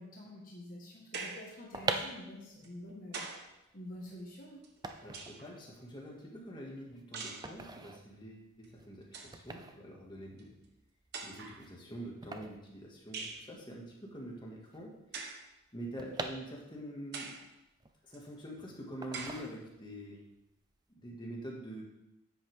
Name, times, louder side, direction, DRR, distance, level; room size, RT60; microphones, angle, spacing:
voice 1, 0.0-3.2 3.7-4.6, left 1 dB, 40° left, -3 dB, 1.5 m, -47 dB
sound 1, 1.1-1.5 2.6-3.5 4.6-5.5 7.1-7.5 8.6-8.7 9.0-9.4 10.4-10.5 11.1-11.6 13.1-13.5 15.1-15.5 16.1-16.2 17.1-17.5 18.1-18.2 19.1-19.5, right 4 dB, 50° right, 1.1 m, -43 dB
sound 2, 1.5-13.6 13.9-14.0 14.2-17.0 17.4-18.5 19.0-20.0 20.4-20.7, right 3 dB, 20° right, 0.5 m, -43 dB
voice 2, 5.0-10.5 11.2-14.9 15.7-17.3 18.0-20.2 21.0-21.8, right 1 dB, 20° left, -2 dB, 1.9 m, -45 dB
10.0 x 7.9 x 3.6 m, 0.90 s
head